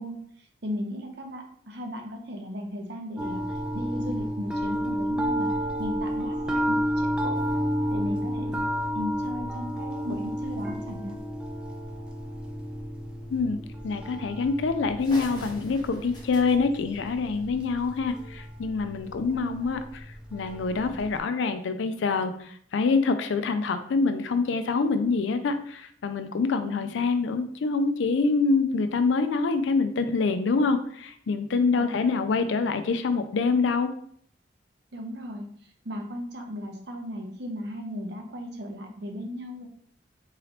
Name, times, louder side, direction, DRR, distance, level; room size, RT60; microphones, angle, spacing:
voice 1, 0.0-5.5 5.8-7.4 7.9-8.6 8.9-11.2 19.3-19.7 26.6-26.9 31.8-32.1 34.9-39.7, equal, 60° right, 3 dB, 0.7 m, -36 dB
sound 1, 3.2-21.2, equal, 5° right, 0.4 m, -31 dB
sound 2, 7.3-9.3 10.8-10.9 11.2-11.3 11.7-11.9 12.8-13.0 13.7-13.8 14.3-14.4 14.7-14.8 15.0-17.7, equal, 20° left, 0.8 m, -48 dB
voice 2, 13.8-20.1 20.3-33.9, left 4 dB, 70° left, 9 dB, 0.4 m, -26 dB
3.8 x 3.2 x 2.9 m, 0.62 s
head